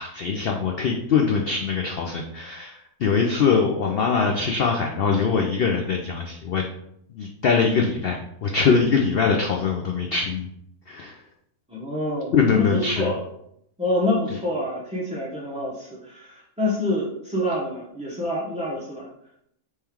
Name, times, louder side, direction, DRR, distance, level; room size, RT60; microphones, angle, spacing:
voice 1, 0.0-6.7 7.1-10.5 10.9-11.1 12.3-13.1, left 5 dB, 80° left, 2 dB, 0.5 m, -22 dB
voice 2, 11.7-13.2 13.8-19.1, left 1 dB, 10° right, -7 dB, 0.4 m, -27 dB
3.5 x 3.2 x 4.4 m, 0.74 s
omnidirectional pair, 1.6 m